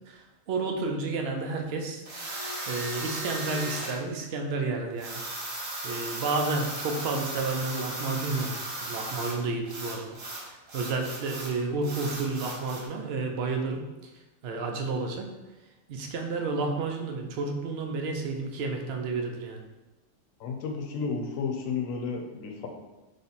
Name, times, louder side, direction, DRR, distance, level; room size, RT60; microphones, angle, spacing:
voice 1, 0.1-2.0 2.7-5.2 5.5-10.2 10.5-13.8 14.4-15.3 15.9-19.6, right 3 dB, 60° right, 3 dB, 0.7 m, -31 dB
sound 1, 2.0-4.0 5.0-9.4 9.6-11.5 11.8-12.9, right 1 dB, 80° right, 1.3 m, -36 dB
voice 2, 20.4-22.7, left 5 dB, 85° left, 2 dB, 1.0 m, -32 dB
3.3 x 2.8 x 4.0 m, 1.1 s
omnidirectional pair, 1.4 m